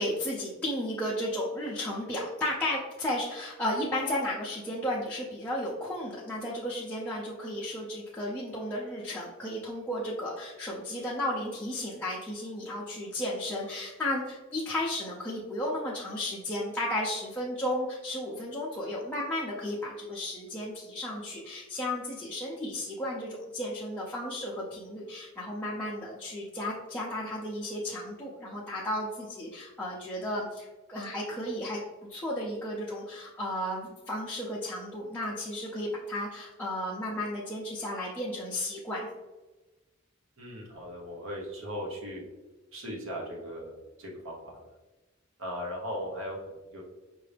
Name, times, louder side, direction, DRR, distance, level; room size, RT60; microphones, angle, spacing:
voice 1, 0.0-31.8 32.1-39.1, left 1 dB, 10° left, -7 dB, 0.6 m, -34 dB
voice 2, 40.4-42.2 42.7-43.7 44.0-44.6 45.4-46.4 46.7-46.8, equal, 80° right, -2 dB, 1.1 m, -37 dB
5.6 x 2.6 x 3.4 m, 1.1 s
head